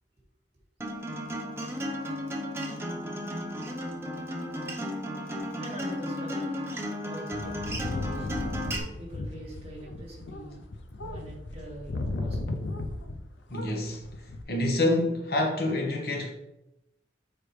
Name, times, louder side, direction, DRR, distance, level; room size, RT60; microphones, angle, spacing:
Acoustic guitar, 0.8-8.8, equal, 15° right, 0.7 m, -34 dB
voice 1, 5.6-6.5 7.0-8.4 9.0-10.6 11.0-12.6, right 1 dB, 35° right, 1.9 m, -43 dB
sound 1, 7.3-13.3 13.5-14.4, left 2 dB, 90° left, 0.6 m, -36 dB
voice 2, 13.5-14.0 14.5-16.3, left 1 dB, 55° left, 1.2 m, -27 dB
6.9 x 4.7 x 3.2 m
head